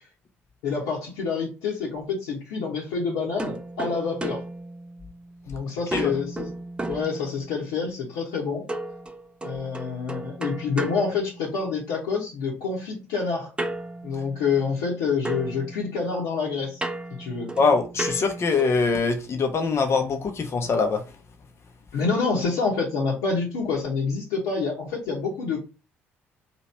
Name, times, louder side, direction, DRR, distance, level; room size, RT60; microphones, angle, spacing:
voice 1, 0.6-4.4 5.5-6.5 6.9-8.7 9.4-13.5 14.0-16.8 17.2-17.5 21.9-25.6, left 5 dB, 70° left, 1.1 m, -27 dB
sound 1, 3.4-5.5 5.9-7.7 8.7-11.9 13.6-15.0 15.2-18.9, right 2 dB, 15° right, 0.6 m, -35 dB
voice 2, 17.6-21.0, left 4 dB, 40° left, 0.8 m, -23 dB
3.0 x 2.9 x 4.3 m
figure-of-eight pair, 50°, 7 cm